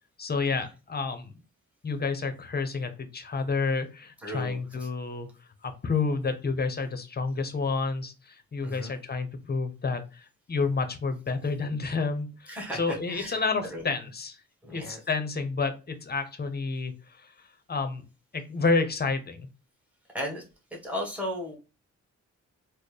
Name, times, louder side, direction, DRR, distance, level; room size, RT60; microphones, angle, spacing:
voice 1, 0.2-1.3 1.8-5.3 5.6-14.4 14.7-17.3 17.7-18.0 18.3-19.5, left 4 dB, 35° left, 8 dB, 0.7 m, -30 dB
voice 2, 4.2-4.6 8.6-8.9 12.5-13.4 13.7-13.8 14.6-15.0 20.1-20.4 20.8-21.6, equal, 5° right, -2 dB, 1.5 m, -35 dB
4.2 x 2.1 x 3.3 m, 0.30 s
cardioid pair, 85°, 29 cm